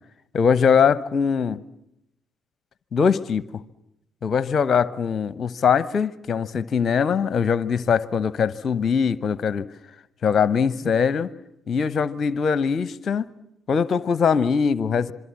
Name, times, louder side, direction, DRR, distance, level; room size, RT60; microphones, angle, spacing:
voice 1, 0.3-1.6 2.9-3.4 4.2-9.7 10.2-11.3 11.7-13.3 13.7-15.1, left 6 dB, 45° left, 0.9 m, -21 dB
26.5 x 23.5 x 7.3 m
figure-of-eight pair, 45°, 0 cm